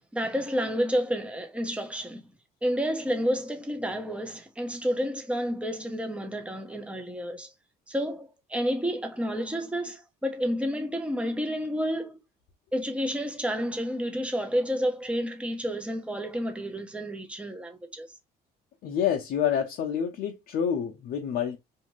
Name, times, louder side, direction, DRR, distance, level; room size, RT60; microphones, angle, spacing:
voice 1, 0.1-2.3 2.6-7.5 7.9-12.2 12.7-18.1, equal, 5° right, 0.7 m, -30 dB
voice 2, 18.8-21.6, left 8 dB, 65° left, 0.5 m, -28 dB
2.6 x 2.4 x 3.0 m
cardioid pair, 110°, 17 cm